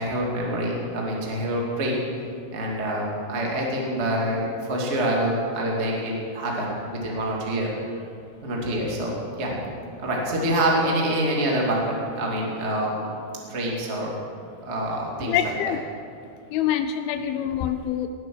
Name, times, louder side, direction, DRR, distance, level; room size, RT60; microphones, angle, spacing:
voice 1, 0.0-2.0 2.5-7.7 8.4-9.6 10.0-13.1 13.4-14.1 14.6-15.5, right 1 dB, 30° right, -2 dB, 1.3 m, -26 dB
voice 2, 15.2-15.8 16.5-18.1, left 10 dB, 85° left, 9 dB, 2.2 m, -25 dB
18.5 x 7.7 x 6.1 m, 2.4 s
omnidirectional pair, 4.8 m